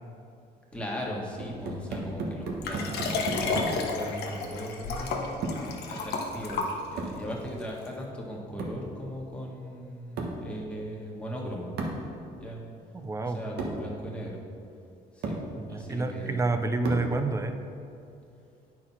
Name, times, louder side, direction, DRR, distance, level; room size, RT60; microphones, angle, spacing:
voice 1, 0.7-11.8 12.3-12.6 13.2-14.4 15.1-16.5, equal, 5° left, -3 dB, 1.5 m, -38 dB
sound 1, 1.4-3.9 5.4-5.8 7.0-7.3 8.6-8.9 10.2-10.5 11.8-12.1 13.0-13.1 13.6-13.9 14.7-14.8 15.2-15.5 16.9-17.2, right 2 dB, 70° right, 1.3 m, -34 dB
Liquid, 2.6-7.2 7.8-7.9, left 4 dB, 70° left, 1.1 m, -32 dB
voice 2, 13.0-13.4 15.6-17.5, right 3 dB, 15° right, 7 dB, 0.6 m, -28 dB
8.7 x 4.7 x 5.5 m, 2.6 s
cardioid pair, 110°, 17 cm